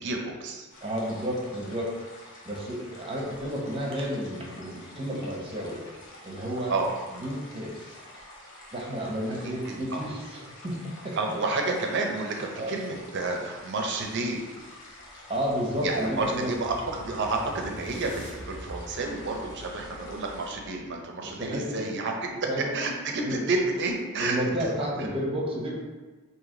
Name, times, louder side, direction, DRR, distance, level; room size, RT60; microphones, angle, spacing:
voice 1, 0.0-0.7 6.7-6.9 9.4-10.0 11.2-14.4 15.8-22.3 22.6-24.4 25.0-25.1, right 3 dB, 55° right, 1 dB, 0.6 m, -30 dB
sound 1, 0.7-20.5, left 1 dB, 60° left, 0.8 m, -48 dB
voice 2, 0.8-1.9 2.4-5.8 6.2-6.7 7.1-8.0 8.7-11.2 12.6-12.7 15.3-16.5 21.2-21.6 22.5-22.7 23.2-23.4 24.2-25.7, equal, 25° right, -2 dB, 0.8 m, -31 dB
sound 2, 14.9-21.0, equal, 85° left, 1.0 m, -46 dB
3.2 x 2.8 x 3.7 m, 1.3 s
head